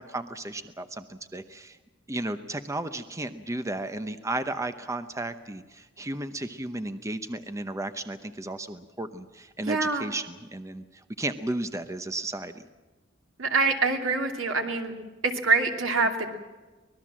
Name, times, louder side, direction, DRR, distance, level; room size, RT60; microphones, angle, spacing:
voice 1, 0.0-1.8 2.1-10.9 11.2-12.6, right 2 dB, 15° right, 10 dB, 0.8 m, -34 dB
voice 2, 9.7-10.1 13.4-14.9 15.2-16.3, right 3 dB, 85° right, 3 dB, 2.7 m, -25 dB
24.5 x 19.5 x 7.5 m, 1.2 s
head